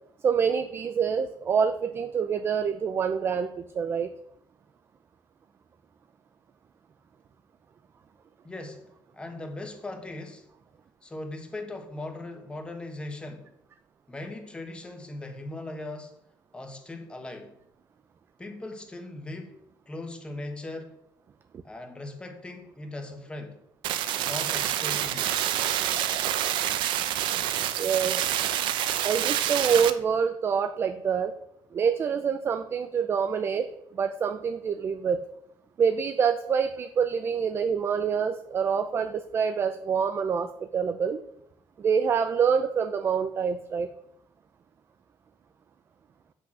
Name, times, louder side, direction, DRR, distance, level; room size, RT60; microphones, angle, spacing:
voice 1, 0.2-4.1 27.8-28.3 29.0-31.3 31.7-33.7 33.9-35.2 35.8-41.2 41.8-43.9, right 6 dB, 30° right, 0.4 m, -26 dB
voice 2, 8.4-8.8 9.1-10.5 11.0-13.5 14.1-16.2 16.5-17.5 18.4-19.5 19.9-21.0 21.6-23.6 24.2-25.4, left 2 dB, 10° left, 1.2 m, -39 dB
sound 1, 23.8-29.9, right 11 dB, 80° right, 0.7 m, -27 dB
8.2 x 6.1 x 6.0 m
cardioid pair, 165°, 8 cm